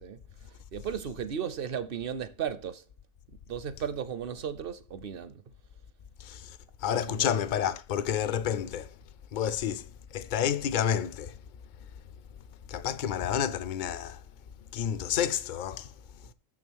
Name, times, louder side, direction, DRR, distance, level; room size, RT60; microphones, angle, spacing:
voice 1, 0.7-2.8 3.5-5.4 6.9-7.4, right 8 dB, 55° right, 0.7 m, -35 dB
voice 2, 6.2-6.6 6.8-8.9 9.3-11.3 12.7-14.2 14.7-15.9, left 9 dB, 60° left, 0.5 m, -30 dB
6.8 x 6.2 x 6.2 m
omnidirectional pair, 1.4 m